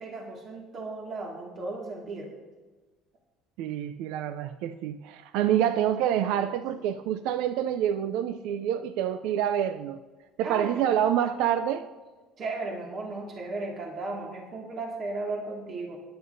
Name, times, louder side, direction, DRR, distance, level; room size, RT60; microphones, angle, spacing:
voice 1, 0.0-2.3 5.5-5.6 6.8-6.9 8.0-8.2 10.4-10.9 12.4-16.0, right 3 dB, 45° right, -1 dB, 2.0 m, -36 dB
voice 2, 3.6-10.0 10.4-11.9, right 10 dB, 75° right, 11 dB, 0.4 m, -27 dB
17.0 x 10.0 x 2.7 m, 1.3 s
supercardioid pair, 85°, 0 cm